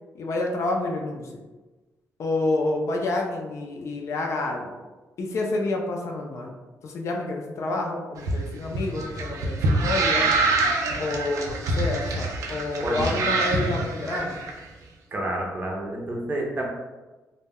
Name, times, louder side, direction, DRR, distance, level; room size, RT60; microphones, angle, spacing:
voice 1, 0.1-1.4 2.2-4.8 5.2-6.5 6.8-10.3 11.0-14.4, left 2 dB, 55° left, 1 dB, 0.4 m, -28 dB
sound 1, 8.2-14.5, right 2 dB, 80° right, 0.4 m, -25 dB
voice 2, 12.8-13.2 15.1-16.7, right 1 dB, 30° right, -1 dB, 0.5 m, -29 dB
2.1 x 2.1 x 3.5 m, 1.2 s
cardioid pair, 125°, 6 cm